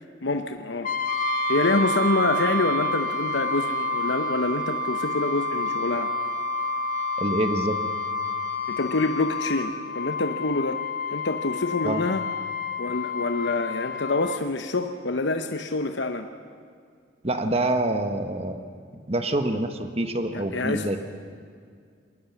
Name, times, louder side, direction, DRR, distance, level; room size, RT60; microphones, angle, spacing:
voice 1, 0.2-0.9 1.5-6.1 8.7-10.8 11.1-12.2 12.8-16.3 20.3-21.0, left 3 dB, 70° left, 7 dB, 0.9 m, -26 dB
Brass instrument, 0.8-14.5, left 7 dB, 45° left, 0.9 m, -30 dB
Wind instrument woodwind instrument, 1.1-9.7, right 7 dB, 60° right, 4.5 m, -31 dB
voice 2, 7.2-7.8 11.8-12.0 17.2-18.6 18.9-21.0, right 1 dB, 30° right, 7 dB, 1.2 m, -26 dB
21.5 x 19.0 x 7.1 m, 2.2 s
head